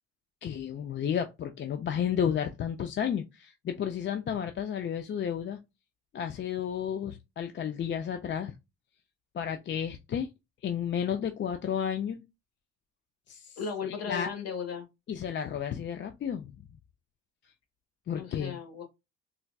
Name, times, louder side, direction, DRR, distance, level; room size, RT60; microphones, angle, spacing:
voice 1, 0.4-5.6 6.1-8.5 9.3-10.3 10.6-12.2 13.3-14.3 15.1-16.5 18.1-18.5, left 8 dB, 40° left, 0.4 m, -32 dB
voice 2, 13.6-14.8 18.1-18.8, left 6 dB, 55° left, 1.3 m, -36 dB
3.9 x 2.2 x 2.2 m
cardioid pair, 90°, 30 cm